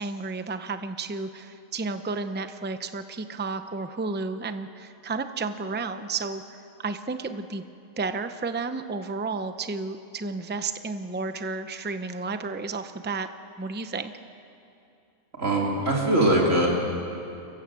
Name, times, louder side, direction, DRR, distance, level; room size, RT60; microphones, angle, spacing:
voice 1, 0.0-7.6 8.0-13.3 13.6-14.1, right 4 dB, 10° right, 9 dB, 0.6 m, -32 dB
voice 2, 15.4-16.7, right 1 dB, 65° right, -2 dB, 4.0 m, -21 dB
27.5 x 15.5 x 7.6 m, 2.6 s
omnidirectional pair, 1.4 m